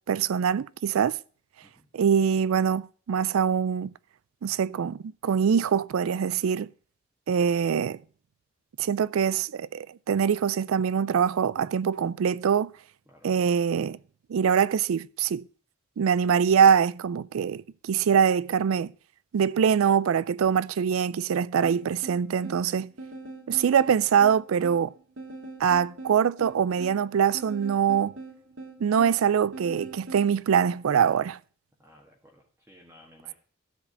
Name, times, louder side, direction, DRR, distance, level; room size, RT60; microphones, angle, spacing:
voice 1, 0.1-1.2 1.9-3.9 4.4-6.7 7.3-8.0 8.8-12.7 13.2-14.0 14.3-15.4 16.0-18.9 19.3-22.9 23.5-24.9 25.6-28.1 28.8-31.4, right 7 dB, 85° right, 0.4 m, -23 dB
sound 1, 21.6-30.3, right 2 dB, 65° right, 2.3 m, -43 dB
voice 2, 31.8-33.3, left 1 dB, 10° right, 1.6 m, -56 dB
13.0 x 4.8 x 6.8 m
head